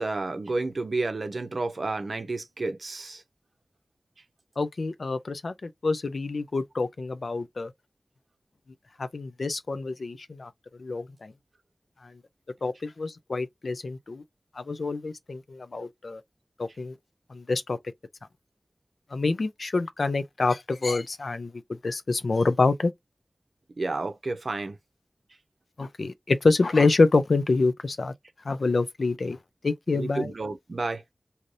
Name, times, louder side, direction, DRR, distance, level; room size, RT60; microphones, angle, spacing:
voice 1, 0.0-3.2 23.8-24.8 29.9-31.0, right 3 dB, 65° right, 0.6 m, -31 dB
voice 2, 4.6-7.7 9.0-10.5 10.8-11.3 12.0-12.1 12.6-14.2 14.6-16.2 16.6-17.0 17.3-17.8 19.1-21.5 21.8-22.9 25.8-28.1 28.4-29.4 29.6-30.3, left 3 dB, 80° left, 0.4 m, -26 dB
2.7 x 2.6 x 3.1 m
wide cardioid pair, 80°, 0 cm